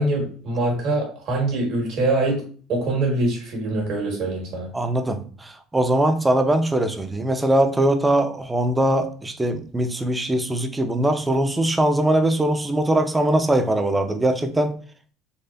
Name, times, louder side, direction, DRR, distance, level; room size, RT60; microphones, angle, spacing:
voice 1, 0.0-2.4 2.7-4.7, right 2 dB, 65° right, 1.7 m, -23 dB
voice 2, 4.7-14.8, right 1 dB, 15° right, 0.5 m, -21 dB
4.1 x 2.4 x 2.6 m
supercardioid pair, 95°, 0 cm